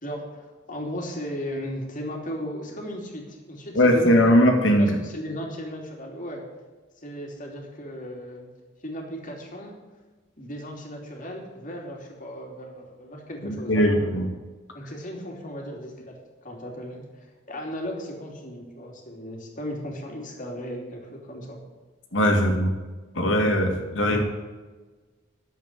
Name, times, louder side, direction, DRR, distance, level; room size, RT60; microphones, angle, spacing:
voice 1, 0.0-4.5 4.8-6.5 7.0-8.5 8.8-9.8 10.4-14.2 14.7-21.6, equal, 45° left, 0 dB, 3.0 m, -36 dB
voice 2, 3.7-4.9 13.7-14.2 22.1-22.7 23.1-24.2, equal, 70° left, 2 dB, 2.4 m, -19 dB
11.0 x 8.0 x 8.4 m, 1.3 s
head